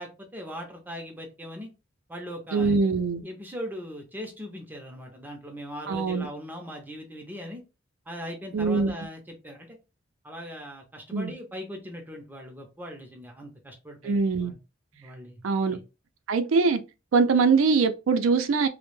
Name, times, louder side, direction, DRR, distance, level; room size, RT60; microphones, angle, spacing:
voice 1, 0.0-1.7 2.1-2.8 3.2-7.6 8.1-9.8 10.2-14.2 14.4-14.6 14.9-15.4 15.7-15.8, equal, 10° right, 0.5 m, -39 dB
voice 2, 2.5-3.2 5.9-6.3 8.5-8.9 11.1-11.3 14.0-14.5 15.4-15.8 16.3-16.8 17.1-18.7, right 4 dB, 85° right, 0.4 m, -22 dB
2.1 x 2.0 x 3.0 m
head